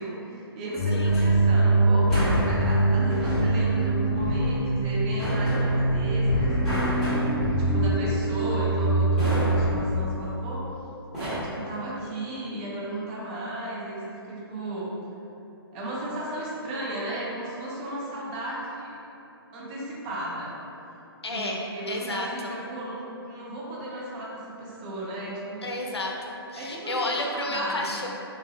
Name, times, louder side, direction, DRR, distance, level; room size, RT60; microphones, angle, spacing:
voice 1, 0.0-2.1 2.5-7.1 7.6-10.7 11.2-15.0 15.7-19.0 19.5-20.6 21.3-25.7 26.6-28.0, right 1 dB, 25° right, -6 dB, 0.5 m, -35 dB
sound 1, 0.8-9.8, right 2 dB, 30° left, 0.7 m, -23 dB
sound 2, 0.9-1.3 2.1-2.7 3.1-3.7 5.2-6.1 6.6-7.5 9.2-9.7 11.1-11.4, equal, ahead, 1.0 m, -31 dB
voice 2, 21.2-22.5 25.6-28.1, left 2 dB, 85° left, 0 dB, 0.5 m, -31 dB
2.6 x 2.5 x 2.9 m, 2.8 s
figure-of-eight pair, 130°, 13 cm